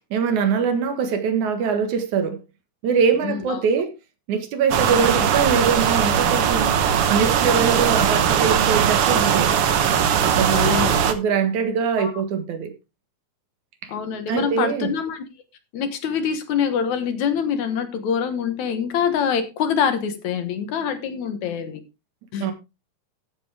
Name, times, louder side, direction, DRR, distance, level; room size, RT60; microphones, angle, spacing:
voice 1, 0.1-2.4 2.8-3.9 4.3-6.7 7.1-9.5 10.2-12.7 13.8-13.9 14.3-14.9 22.4-22.5, right 6 dB, 75° right, 3.0 m, -23 dB
voice 2, 3.2-3.6 10.5-11.0 12.0-12.1 13.9-15.2 15.7-21.8 22.3-22.5, left 7 dB, 70° left, 2.7 m, -25 dB
sound 1, 4.7-11.1, right 8 dB, 60° right, 1.7 m, -19 dB
14.0 x 7.9 x 3.4 m
omnidirectional pair, 3.5 m